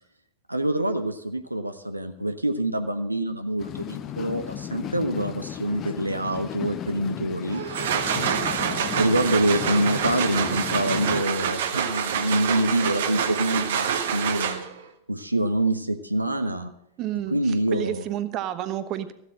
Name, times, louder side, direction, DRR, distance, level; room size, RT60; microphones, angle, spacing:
voice 1, 0.5-7.6 8.1-14.7 15.1-16.7 17.3-18.0, right 1 dB, 85° right, 8 dB, 0.9 m, -26 dB
sound 1, 3.6-11.2, left 10 dB, 30° left, 0.8 m, -35 dB
sound 2, 7.5-14.9, right 8 dB, 60° right, 1.3 m, -27 dB
voice 2, 17.0-19.1, right 11 dB, 35° right, 12 dB, 1.0 m, -30 dB
15.0 x 8.0 x 7.5 m, 0.73 s
figure-of-eight pair, 90°, 0 cm